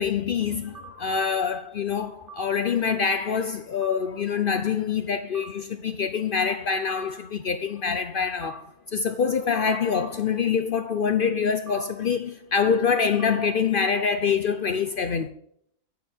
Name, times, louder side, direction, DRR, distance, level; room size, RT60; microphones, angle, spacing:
voice 1, 0.0-8.6 8.9-15.3, left 6 dB, 70° left, 0.5 m, -25 dB
sound 1, 0.7-0.9 2.3-2.4 3.8-4.0 5.3-5.5 6.9-7.0 8.4-8.6 9.9-10.1 11.7-11.8 13.2-13.3, right 6 dB, 55° right, 1.5 m, -42 dB
9.3 x 8.0 x 4.3 m
omnidirectional pair, 1.6 m